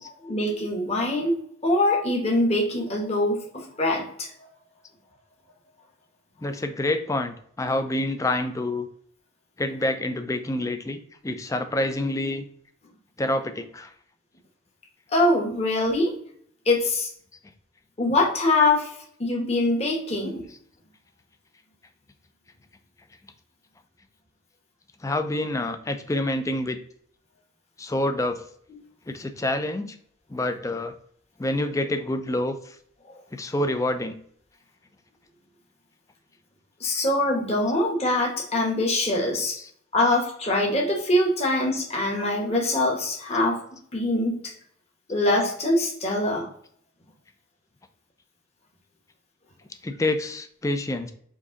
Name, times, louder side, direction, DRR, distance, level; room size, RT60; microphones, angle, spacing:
voice 1, 0.2-1.3 1.6-4.3 15.1-16.1 16.7-17.1 18.0-18.9 19.2-20.4 33.1-33.2 36.8-39.6 39.9-43.6 43.9-44.3 45.1-46.5, left 2 dB, 30° left, -1 dB, 1.1 m, -23 dB
voice 2, 6.4-8.9 9.6-12.5 13.2-13.9 25.0-26.8 27.8-28.4 29.1-30.0 30.3-30.9 31.4-32.8 33.3-34.2 39.6-39.7 40.0-40.2 49.8-51.1, left 1 dB, 15° left, 8 dB, 0.4 m, -27 dB
5.1 x 2.7 x 3.7 m, 0.63 s
head